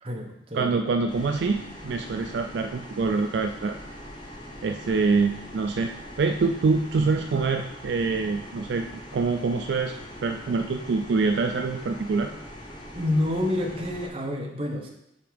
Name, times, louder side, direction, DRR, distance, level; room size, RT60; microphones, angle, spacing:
voice 1, 0.0-0.8 12.9-14.9, left 1 dB, 30° right, 0 dB, 1.0 m, -28 dB
voice 2, 0.5-3.8 4.6-5.9 6.2-8.9 9.1-9.9 10.2-12.3, right 4 dB, 60° right, 5 dB, 0.4 m, -25 dB
sound 1, 1.1-14.1, equal, 20° left, 1.0 m, -42 dB
8.2 x 3.5 x 5.1 m, 0.80 s
head